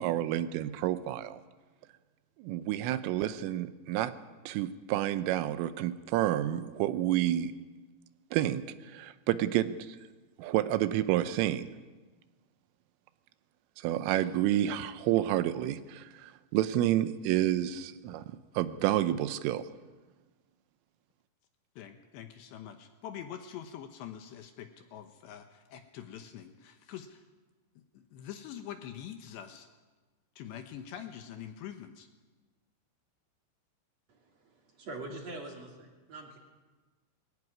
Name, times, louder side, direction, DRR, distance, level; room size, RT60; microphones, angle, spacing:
voice 1, 0.0-1.4 2.4-4.1 4.5-7.5 8.3-8.6 8.9-10.0 10.4-11.8 13.8-18.2 18.5-19.6, right 13 dB, 85° right, 12 dB, 3.4 m, -29 dB
voice 2, 21.8-27.2 27.9-29.7 30.4-32.1, left 9 dB, 75° left, 7 dB, 2.9 m, -45 dB
voice 3, 34.1-36.4, right 2 dB, 40° right, 1 dB, 3.1 m, -44 dB
22.0 x 16.0 x 9.6 m, 1.3 s
omnidirectional pair, 5.8 m